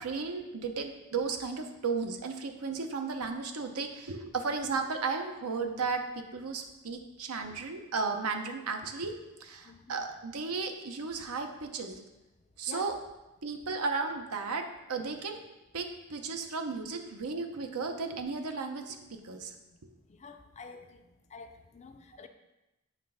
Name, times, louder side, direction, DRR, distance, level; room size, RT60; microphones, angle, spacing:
voice 1, 0.0-9.1 9.4-12.0 12.6-12.9 13.4-15.4 15.7-19.5, right 4 dB, 75° right, 5 dB, 0.8 m, -34 dB
voice 2, 9.6-10.0 12.7-12.9 20.1-21.0 21.3-22.3, left 4 dB, 30° left, 7 dB, 0.4 m, -48 dB
7.5 x 3.3 x 5.5 m, 0.99 s
head